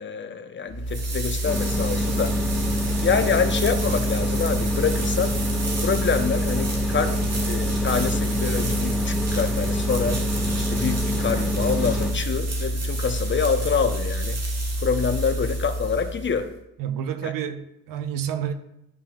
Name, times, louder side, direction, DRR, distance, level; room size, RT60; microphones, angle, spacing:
voice 1, 0.0-2.3 3.0-5.4 5.8-7.2 7.5-10.2 10.6-14.4 14.8-16.5 17.2-17.3, left 6 dB, 30° left, 1.0 m, -26 dB
sound 1, 0.7-16.5, right 1 dB, 40° right, 2.1 m, -27 dB
sound 2, 1.5-12.1, left 1 dB, ahead, 1.7 m, -27 dB
voice 2, 16.8-18.5, right 9 dB, 60° right, 0.9 m, -29 dB
12.0 x 5.5 x 2.5 m
hypercardioid pair, 65°, 38 cm